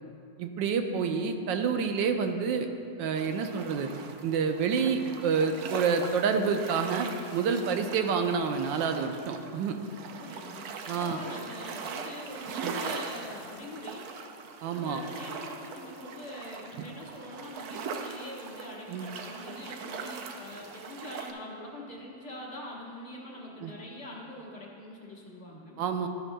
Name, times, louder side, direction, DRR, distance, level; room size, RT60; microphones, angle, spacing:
voice 1, 0.4-2.7 3.0-3.9 4.2-9.8 10.9-11.2 12.6-12.7 14.6-15.0 18.9-19.1 23.6-23.7 25.8-26.1, right 6 dB, 85° right, 6 dB, 1.3 m, -28 dB
sound 1, 3.2-21.3, right 5 dB, 65° right, 1.0 m, -41 dB
voice 2, 10.1-14.0 14.7-25.8, left 1 dB, 40° left, -4 dB, 1.7 m, -43 dB
13.0 x 11.0 x 2.2 m, 2.6 s
omnidirectional pair, 2.0 m